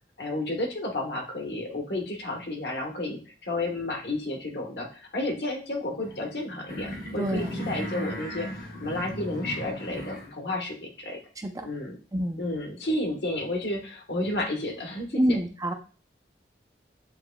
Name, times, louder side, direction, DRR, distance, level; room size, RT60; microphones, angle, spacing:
voice 1, 0.2-11.2 11.6-12.0 12.4-15.4, left 1 dB, 70° left, 1 dB, 1.2 m, -32 dB
sound 1, 6.0-10.4, equal, 50° left, 0.9 m, -36 dB
voice 2, 7.2-7.5 11.4-11.7 12.1-12.4 15.1-15.7, equal, 20° right, 5 dB, 0.4 m, -26 dB
7.5 x 3.0 x 2.2 m, 0.37 s
head